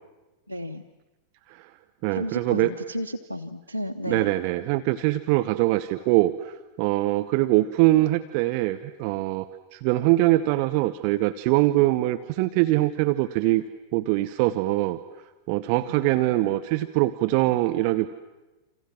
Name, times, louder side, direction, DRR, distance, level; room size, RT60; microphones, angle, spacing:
voice 1, 0.5-0.8 2.1-4.3 15.9-16.5, left 1 dB, 90° left, 8 dB, 1.0 m, -33 dB
voice 2, 2.0-2.7 4.1-13.6 13.9-15.0 15.5-18.1, right 17 dB, 45° right, 10 dB, 0.9 m, -23 dB
28.5 x 27.5 x 7.5 m, 1.1 s
figure-of-eight pair, 90°, 0 cm